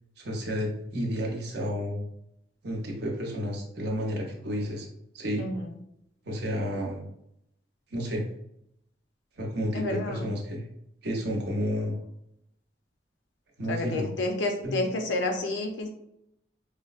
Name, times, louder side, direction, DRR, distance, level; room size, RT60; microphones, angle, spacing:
voice 1, 0.2-2.0 2.6-4.9 5.1-5.4 6.2-7.0 7.9-8.2 9.4-10.7 11.0-12.0 13.6-14.1 14.6-14.7, equal, 65° right, 0 dB, 0.8 m, -31 dB
voice 2, 9.7-10.3 13.7-15.9, left 2 dB, 80° left, 3 dB, 0.6 m, -30 dB
4.7 x 2.0 x 2.4 m, 0.78 s
head